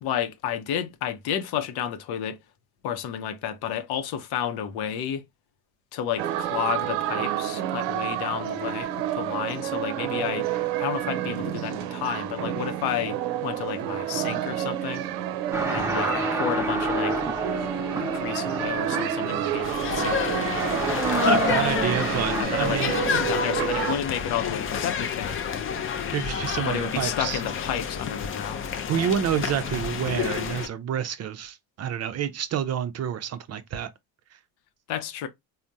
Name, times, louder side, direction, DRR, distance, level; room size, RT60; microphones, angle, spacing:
voice 1, 0.0-2.4 2.8-5.2 5.9-8.9 9.2-10.5 10.8-15.0 15.7-17.2 18.0-20.8 22.4-25.4 26.6-28.7 34.9-35.3, left 9 dB, 70° left, 0.7 m, -31 dB
sound 1, 6.2-24.0, right 11 dB, 90° right, 0.6 m, -29 dB
sound 2, 15.5-22.4, right 1 dB, 5° right, 0.7 m, -30 dB
sound 3, 19.6-30.7, left 7 dB, 35° left, 0.4 m, -29 dB
voice 2, 21.2-23.2 26.1-27.4 28.9-33.9, right 9 dB, 40° right, 0.4 m, -28 dB
3.3 x 2.1 x 2.6 m
supercardioid pair, 90°, 40 cm